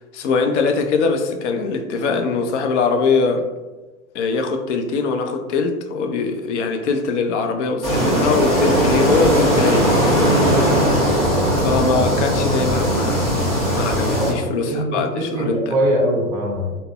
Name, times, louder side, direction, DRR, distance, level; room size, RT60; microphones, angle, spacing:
voice 1, 0.1-3.4 4.1-9.9 11.6-13.4 13.7-15.8, left 4 dB, 55° left, 5 dB, 0.5 m, -22 dB
sound 1, 7.8-14.3, equal, ahead, 1.2 m, -18 dB
voice 2, 10.2-10.6 14.1-16.8, right 1 dB, 30° right, -3 dB, 1.1 m, -22 dB
3.6 x 2.0 x 2.2 m, 1.2 s
hypercardioid pair, 110°, 44 cm